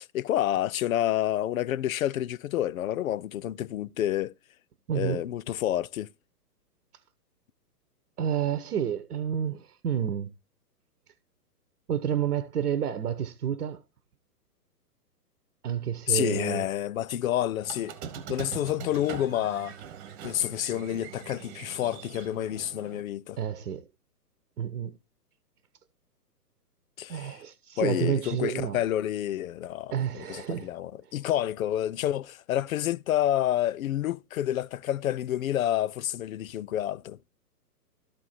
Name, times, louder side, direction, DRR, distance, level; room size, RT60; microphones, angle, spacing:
voice 1, 0.0-4.3 4.9-6.1 16.1-17.9 18.3-19.7 20.2-23.4 27.0-27.4 27.8-37.2, left 12 dB, 60° left, 0.5 m, -29 dB
voice 2, 4.9-5.2 8.2-10.3 11.9-13.8 15.6-16.6 23.4-23.8 24.6-25.0 27.1-28.8 29.9-30.7, right 9 dB, 65° right, 1.0 m, -29 dB
Squeak, 17.6-23.0, right 8 dB, 30° right, 1.3 m, -42 dB
13.0 x 4.5 x 4.2 m
hypercardioid pair, 125°, 48 cm